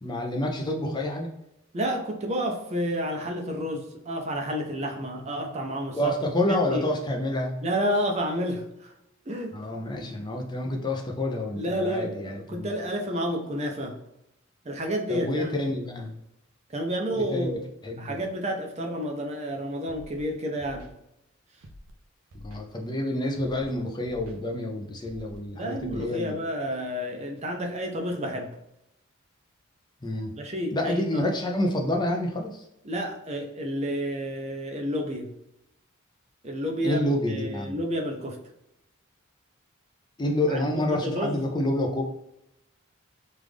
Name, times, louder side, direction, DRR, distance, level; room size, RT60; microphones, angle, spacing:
voice 1, 0.0-1.3 6.0-7.6 9.5-12.7 15.1-16.2 17.3-17.5 17.8-18.1 22.3-26.3 30.0-30.3 30.7-32.7 36.8-37.8 40.2-42.0, left 1 dB, 20° left, 2 dB, 0.5 m, -28 dB
voice 2, 1.7-6.1 6.5-6.9 7.6-8.9 9.3-9.6 11.6-14.0 14.6-15.5 16.7-17.6 18.0-20.9 25.5-28.6 30.4-31.2 32.8-35.3 36.4-37.0 37.3-38.4 40.5-41.4, equal, 30° right, 2 dB, 0.5 m, -30 dB
Scratching (performance technique), 19.9-20.2 20.6-20.9 21.6-21.9 22.3-22.6 23.3-23.7 24.0-24.4 25.0-25.4 25.8-26.1, equal, 75° right, 0.6 m, -47 dB
3.3 x 2.5 x 3.5 m, 0.85 s
head